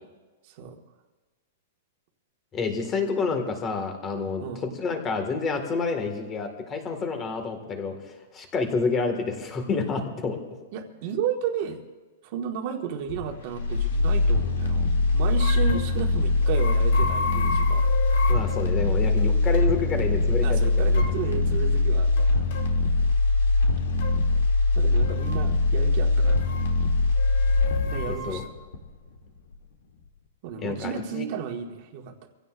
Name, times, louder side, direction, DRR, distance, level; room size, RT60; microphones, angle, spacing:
voice 1, 0.4-0.8 4.4-4.6 10.7-11.8 12.2-17.8 20.4-22.5 24.7-26.5 27.8-28.5 30.4-32.3, right 7 dB, 40° right, 3 dB, 1.6 m, -33 dB
voice 2, 2.5-10.4 18.3-20.9 28.1-28.4 30.6-31.3, left 4 dB, 20° left, 5 dB, 1.8 m, -29 dB
sound 1, 13.1-29.2 29.5-29.6, left 3 dB, 80° left, 2.5 m, -22 dB
sound 2, 15.3-15.9 16.4-18.7 19.2-19.3 19.5-19.7 20.6-21.2 22.2-22.7 24.0-24.2 25.0-25.4 26.2-26.7 27.2-28.5, left 4 dB, 45° left, 1.1 m, -34 dB
25.5 x 16.0 x 2.5 m, 1.3 s
hypercardioid pair, 165°, 0 cm